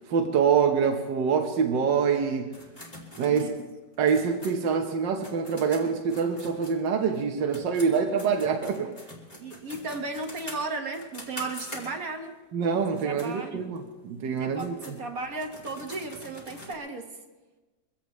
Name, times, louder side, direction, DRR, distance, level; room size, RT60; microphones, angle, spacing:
voice 1, 0.1-2.6 3.2-3.5 4.0-8.9 12.5-15.0, right 6 dB, 80° right, 3 dB, 1.8 m, -25 dB
sound 1, 2.5-7.2 7.5-12.3 12.8-13.3 13.8-13.9 14.4-16.7, left 1 dB, 20° left, 2.7 m, -45 dB
voice 2, 9.4-12.4 12.9-13.7 14.3-17.2, right 3 dB, 55° right, 4 dB, 1.6 m, -35 dB
23.5 x 16.0 x 3.2 m, 1.2 s
omnidirectional pair, 1.9 m